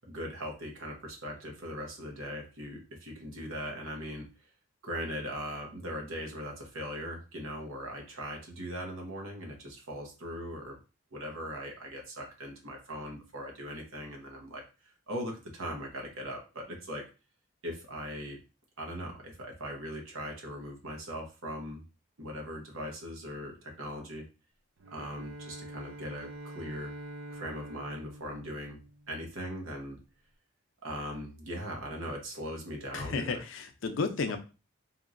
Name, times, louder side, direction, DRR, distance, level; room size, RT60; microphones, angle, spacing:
voice 1, 0.1-4.3 4.8-10.8 11.1-14.6 15.1-17.0 17.6-18.4 18.8-21.8 22.2-24.3 24.9-26.9 27.3-28.8 29.1-30.0 30.8-33.4, equal, 90° right, 1 dB, 1.0 m, -40 dB
Bowed string instrument, 24.8-29.4, right 1 dB, 70° right, 0.5 m, -45 dB
voice 2, 32.9-34.4, left 4 dB, 70° left, 7 dB, 0.5 m, -32 dB
2.9 x 2.6 x 2.5 m, 0.31 s
head